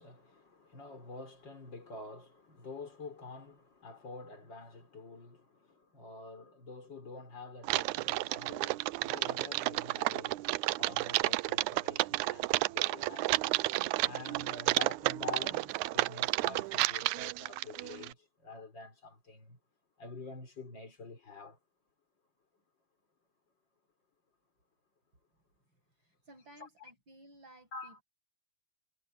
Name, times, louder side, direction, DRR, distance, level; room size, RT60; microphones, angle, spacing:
voice 1, 0.0-10.4 10.7-13.4 14.0-19.6 20.0-21.6 26.6-26.7 27.7-28.0, left 3 dB, 30° left, 5.1 m, -48 dB
Typing, 7.6-18.1, right 19 dB, 85° right, 1.7 m, -32 dB
voice 2, 25.7-28.0, right 1 dB, 35° right, 8.8 m, -58 dB
omnidirectional pair, 3.9 m